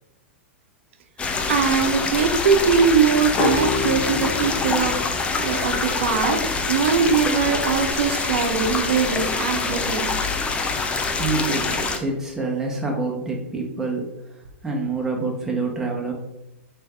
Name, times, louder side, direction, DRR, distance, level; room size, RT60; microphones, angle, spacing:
sound 1, 1.2-12.0, left 4 dB, 15° left, 0.4 m, -25 dB
voice 1, 1.5-4.9 5.4-6.4 6.7-10.1, right 6 dB, 65° right, 5 dB, 0.6 m, -21 dB
sound 2, 3.4-6.9, left 3 dB, 30° left, 0.8 m, -29 dB
voice 2, 11.2-14.0 14.6-16.1, right 3 dB, 5° right, -2 dB, 0.9 m, -26 dB
3.3 x 3.3 x 3.5 m, 0.91 s
hypercardioid pair, 110°, 7 cm